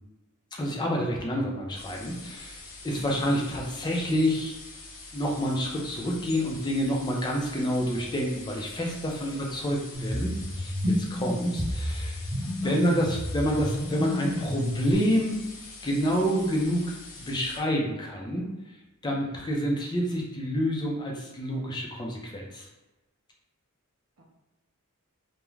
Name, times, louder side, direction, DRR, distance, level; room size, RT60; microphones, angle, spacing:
voice 1, 0.6-4.5 5.1-10.7 11.1-12.2 12.4-15.4 15.8-18.5 19.0-22.7, equal, 20° left, -1 dB, 0.4 m, -28 dB
sound 1, 1.7-17.6, left 3 dB, 65° left, 0.6 m, -45 dB
voice 2, 2.9-3.4 8.9-10.1 11.1-11.6 12.4-12.8 19.1-19.5 24.2-24.3, right 1 dB, 85° right, -1 dB, 0.6 m, -51 dB
sound 2, 9.9-14.9, equal, 30° right, 1.0 m, -30 dB
2.3 x 2.2 x 3.1 m, 1.1 s
head